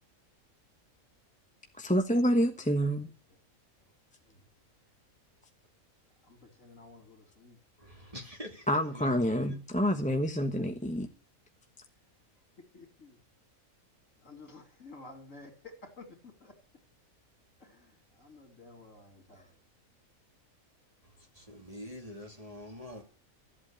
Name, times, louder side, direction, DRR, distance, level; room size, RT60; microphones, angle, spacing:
voice 1, 1.7-3.1 8.7-11.1, equal, 5° left, 0.9 m, -28 dB
voice 2, 2.6-2.9 4.2-4.4 6.2-7.6 12.7-13.2 14.2-16.5 17.6-19.6, left 3 dB, 65° left, 3.3 m, -52 dB
voice 3, 7.8-9.1 9.5-9.6 21.0-23.0, left 1 dB, 25° right, 2.8 m, -45 dB
13.5 x 8.3 x 8.8 m
omnidirectional pair, 1.5 m